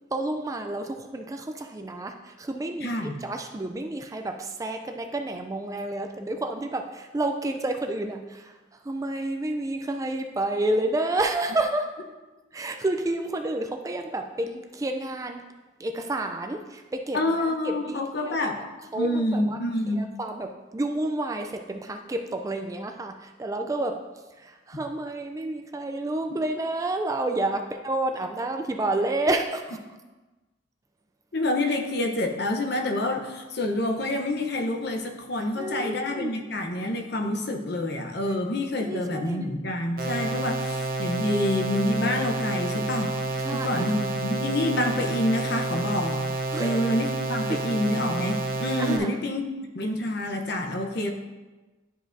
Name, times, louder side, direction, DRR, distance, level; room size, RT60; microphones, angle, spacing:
voice 1, 0.1-8.5 8.8-11.9 12.5-15.4 15.8-17.2 17.5-18.6 18.9-19.6 20.0-24.0 24.4-29.8 35.6-36.3 38.8-39.5 43.4-43.9 46.5-46.8 47.5-47.6 48.8-49.2, right 2 dB, 15° right, 5 dB, 0.3 m, -30 dB
voice 2, 2.8-3.2 17.1-18.6 18.9-20.1 31.3-43.1 43.5-46.2 46.6-49.5 49.7-51.1, left 1 dB, 55° left, 4 dB, 0.8 m, -27 dB
sound 1, 40.0-49.0, right 2 dB, 50° right, 0.6 m, -29 dB
11.0 x 5.0 x 2.6 m, 1.2 s
head